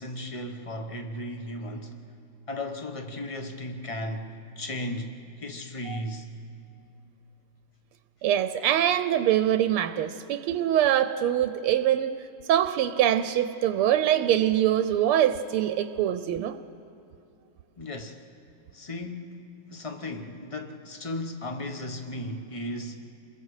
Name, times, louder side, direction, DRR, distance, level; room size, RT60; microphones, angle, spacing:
voice 1, 0.0-2.0 2.5-6.3 17.8-18.2 18.7-23.0, left 1 dB, 30° left, 0.6 m, -36 dB
voice 2, 8.2-12.1 12.5-16.6, right 11 dB, 85° right, 1.5 m, -24 dB
28.5 x 21.5 x 4.9 m
omnidirectional pair, 2.4 m